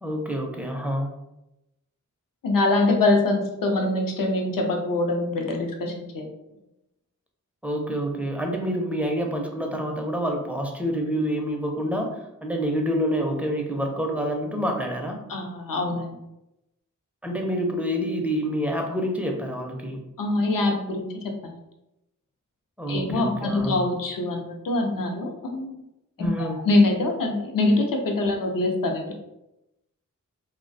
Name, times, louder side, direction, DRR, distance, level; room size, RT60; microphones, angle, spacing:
voice 1, 0.0-1.1 7.6-15.2 17.2-20.0 22.8-23.7 26.2-26.6, equal, 5° right, 1 dB, 0.4 m, -27 dB
voice 2, 2.4-6.3 15.3-16.2 20.2-21.5 22.9-25.8 26.2-29.1, left 2 dB, 80° left, 2 dB, 0.5 m, -24 dB
2.2 x 2.1 x 2.6 m, 0.89 s
wide cardioid pair, 60°, 33 cm